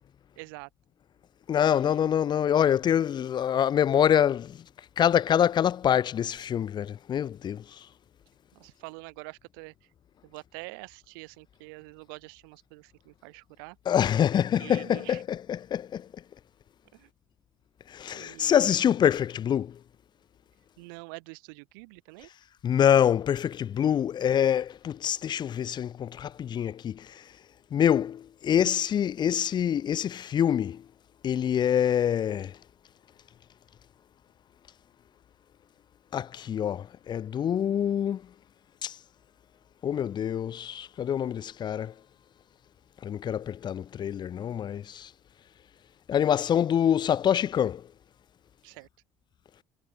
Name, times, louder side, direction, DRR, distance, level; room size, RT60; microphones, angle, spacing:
voice 1, 0.4-0.7 1.6-2.2 8.5-9.9 10.2-13.8 14.6-15.2 16.9-17.1 18.1-19.0 20.8-22.3 48.6-48.9, right 31 dB, 70° right, 4.2 m, -46 dB
voice 2, 1.5-4.6 5.0-7.6 13.9-16.1 17.9-19.8 22.6-27.2 27.7-30.8 31.2-32.6 36.1-38.2 38.8-38.9 39.8-41.9 43.0-45.1 46.1-47.8, left 9 dB, 40° left, 0.7 m, -25 dB
hypercardioid pair, 60°, 12 cm